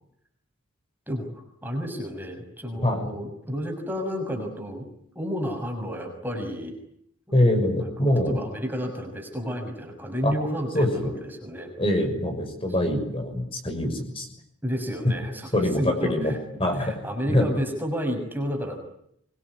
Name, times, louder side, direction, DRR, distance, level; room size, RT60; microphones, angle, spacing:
voice 1, 1.1-4.8 5.1-6.7 7.8-11.7 14.6-16.4 16.7-18.8, equal, 10° right, 3 dB, 6.5 m, -31 dB
voice 2, 7.3-8.4 10.2-10.3 10.7-11.1 11.8-14.3 15.0-15.1 15.5-16.3 16.6-16.9 17.3-17.5, left 1 dB, 25° left, 5 dB, 6.3 m, -24 dB
25.0 x 24.0 x 9.8 m, 0.73 s
head